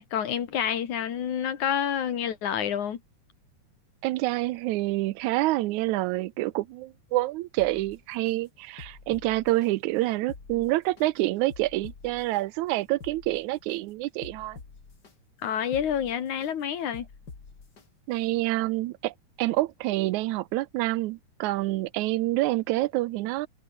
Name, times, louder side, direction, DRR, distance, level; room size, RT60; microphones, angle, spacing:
voice 1, 0.0-3.0 15.4-17.1, left 8 dB, 85° left, 3.6 m, -28 dB
voice 2, 4.0-14.6 18.1-23.5, right 17 dB, 85° right, 2.1 m, -27 dB
sound 1, 7.6-8.3 8.8-9.7 10.2-11.1 11.5-12.4 12.9-13.8 14.2-15.1 15.6-16.5 16.9-17.8 18.3-18.4, left 4 dB, 35° left, 3.3 m, -47 dB
omnidirectional pair, 3.3 m